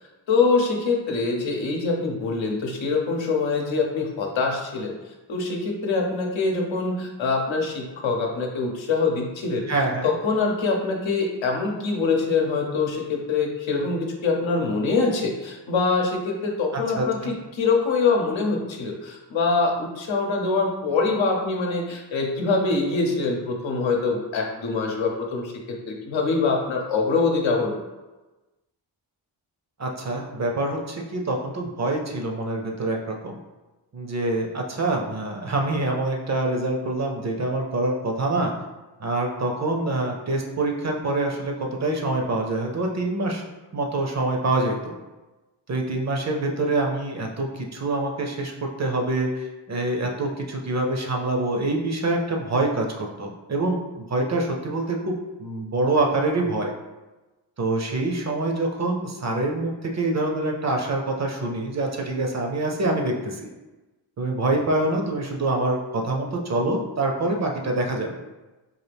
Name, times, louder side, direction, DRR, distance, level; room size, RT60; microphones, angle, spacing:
voice 1, 0.3-5.0 5.3-9.7 10.0-25.5 25.9-27.8, left 4 dB, 85° left, 1 dB, 0.8 m, -24 dB
voice 2, 9.7-10.1 16.7-17.3 29.8-33.4 33.9-38.5 39.0-43.4 43.7-44.9 45.7-56.7 57.6-63.5 64.2-68.2, right 2 dB, 40° right, 1 dB, 0.5 m, -25 dB
4.0 x 2.4 x 3.3 m, 1.1 s
wide cardioid pair, 120°, 45 cm